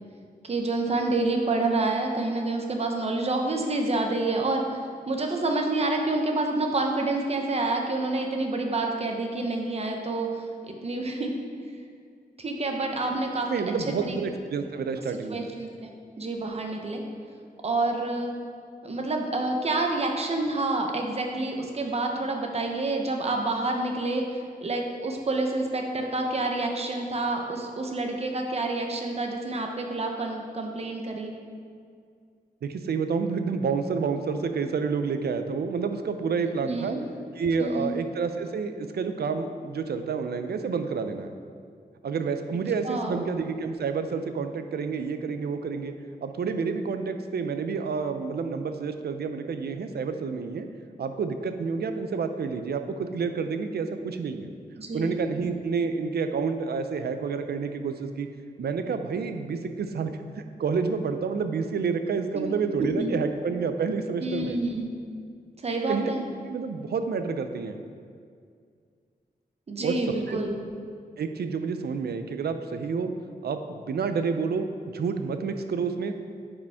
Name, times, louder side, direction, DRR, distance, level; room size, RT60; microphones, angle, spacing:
voice 1, 0.4-4.6 5.1-10.3 10.7-11.3 12.4-13.5 14.0-14.2 15.3-15.9 16.2-17.0 17.6-18.3 18.8-24.2 24.6-31.3 36.6-37.0 37.6-37.9 42.8-43.2 54.8-55.1 62.3-63.1 64.2-64.9 65.6-66.2 69.7-70.5, right 2 dB, 40° right, 2 dB, 0.8 m, -28 dB
voice 2, 13.5-15.4 32.6-37.0 37.4-41.3 42.0-45.9 46.2-50.7 51.0-54.5 54.9-58.3 58.6-60.1 60.6-64.6 65.9-66.1 66.5-67.8 69.8-70.4 71.2-73.1 73.4-76.2, right 5 dB, 85° right, 8 dB, 0.5 m, -29 dB
9.4 x 5.0 x 3.5 m, 2.2 s
wide cardioid pair, 150°, 16 cm